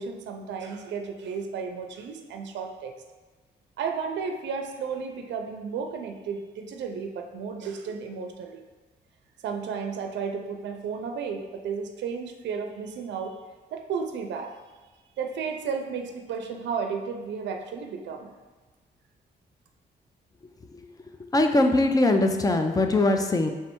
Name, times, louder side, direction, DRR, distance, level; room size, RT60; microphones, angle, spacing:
voice 1, 0.0-2.9 3.8-8.6 9.4-13.4 13.7-14.5 15.2-18.3, right 5 dB, 85° right, 4 dB, 0.5 m, -33 dB
voice 2, 21.3-23.5, left 2 dB, 20° left, 5 dB, 0.4 m, -21 dB
3.4 x 3.1 x 4.4 m, 1.3 s
cardioid pair, 100°, 18 cm